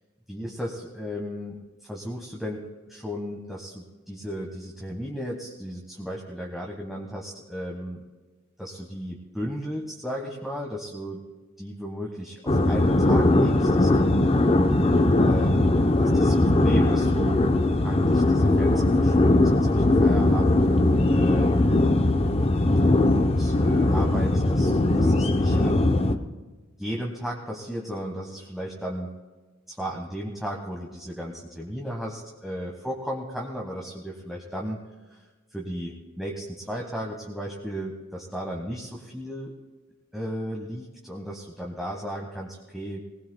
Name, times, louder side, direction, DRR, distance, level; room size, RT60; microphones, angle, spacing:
voice 1, 0.3-8.0 8.6-11.2 11.6-14.2 15.2-17.5 17.8-21.5 23.1-26.0 26.8-29.1 29.7-34.8 35.1-35.2 35.5-39.5 40.1-43.0, equal, ahead, -2 dB, 1.2 m, -35 dB
sound 1, 12.5-26.2, left 2 dB, 30° left, 0.7 m, -20 dB
20.0 x 19.5 x 2.2 m, 1.3 s
head